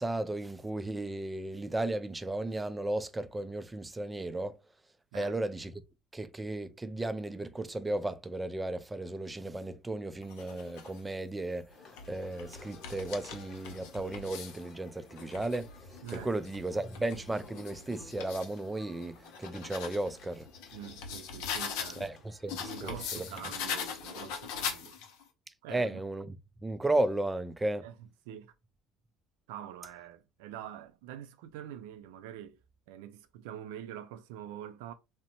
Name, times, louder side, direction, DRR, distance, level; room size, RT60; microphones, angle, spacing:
voice 1, 0.0-4.6 5.1-5.8 6.1-11.8 12.1-20.5 22.0-23.2 25.7-26.4 26.6-27.8, right 2 dB, 10° right, 0.3 m, -34 dB
sound 1, 10.2-11.0 11.7-14.6 15.1-18.5 19.0-22.1 22.5-25.2, left 7 dB, 80° left, 0.6 m, -41 dB
sound 2, 11.7-24.2, left 3 dB, 45° left, 0.8 m, -56 dB
voice 2, 20.7-22.1 22.6-25.0 25.6-26.0 27.8-28.5 29.5-32.6 32.9-34.9, right 10 dB, 85° right, 0.4 m, -45 dB
2.7 x 2.0 x 2.9 m
supercardioid pair, 105°, 0 cm